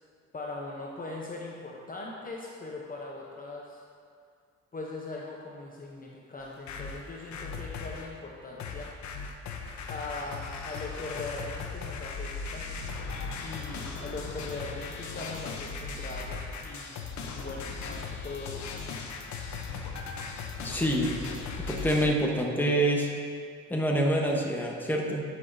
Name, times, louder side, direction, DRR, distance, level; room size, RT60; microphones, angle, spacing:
voice 1, 0.3-3.8 4.7-8.9 9.9-12.7 13.4-17.0 17.3-18.7, left 3 dB, 30° left, -3 dB, 0.8 m, -40 dB
sound 1, 6.4-8.1 8.6-22.1, left 4 dB, 70° left, 0.8 m, -38 dB
voice 2, 20.6-21.2 21.7-23.1 23.7-25.2, right 1 dB, 5° left, -1 dB, 1.0 m, -26 dB
10.5 x 6.1 x 2.7 m, 2.3 s
cardioid pair, 90°, 30 cm